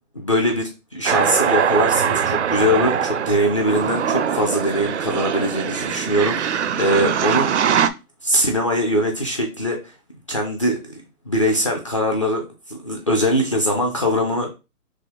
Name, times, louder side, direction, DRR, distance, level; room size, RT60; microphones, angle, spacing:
voice 1, 0.1-7.9 8.2-9.8 10.3-14.5, equal, 20° left, 1 dB, 0.5 m, -22 dB
sound 1, 1.1-7.9, right 8 dB, 50° right, 0.5 m, -22 dB
5.8 x 2.1 x 3.9 m, 0.27 s
hypercardioid pair, 155°, 46 cm